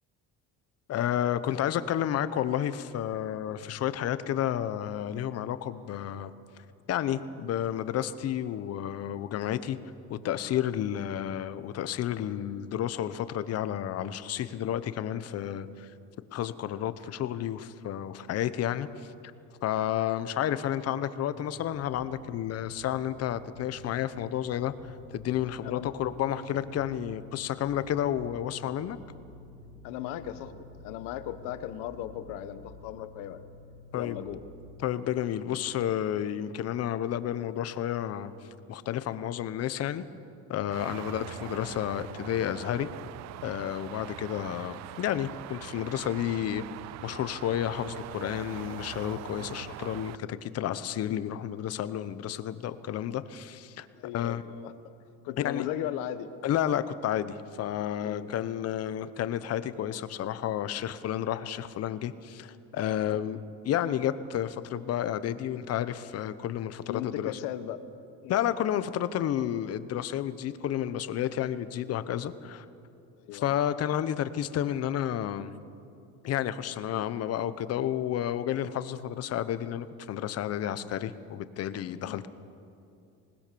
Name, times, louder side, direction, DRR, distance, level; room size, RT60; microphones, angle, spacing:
voice 1, 0.9-6.3 6.9-9.8 10.1-15.9 16.3-18.9 19.6-24.7 25.1-29.0 33.9-34.2 34.8-38.3 38.7-40.0 40.5-42.9 43.4-46.6 47.0-53.9 54.1-54.4 55.4-55.6 56.4-63.4 63.6-67.3 68.3-72.6 73.3-75.5 76.2-82.3, left 11 dB, 50° left, 13 dB, 1.0 m, -31 dB
sound 1, 21.3-34.8, left 2 dB, 30° right, 4.0 m, -50 dB
voice 2, 29.8-33.4 33.9-34.4 53.9-54.9 55.2-56.3 58.0-58.3 63.1-63.2 66.9-67.8 68.2-68.4 73.2-73.6 82.0-82.2, left 11 dB, 90° left, 11 dB, 1.4 m, -37 dB
sound 2, 40.7-50.2, right 15 dB, 55° right, 0.5 m, -43 dB
25.5 x 19.5 x 7.0 m, 2.6 s
cardioid pair, 140°, 32 cm